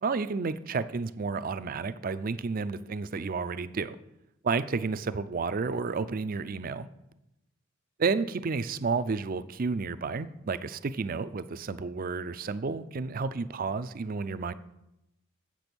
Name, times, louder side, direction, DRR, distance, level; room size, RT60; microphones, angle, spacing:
voice 1, 0.0-4.0 4.4-6.9 8.0-14.5, right 4 dB, 45° right, 13 dB, 0.4 m, -31 dB
8.0 x 6.1 x 6.9 m, 0.89 s
head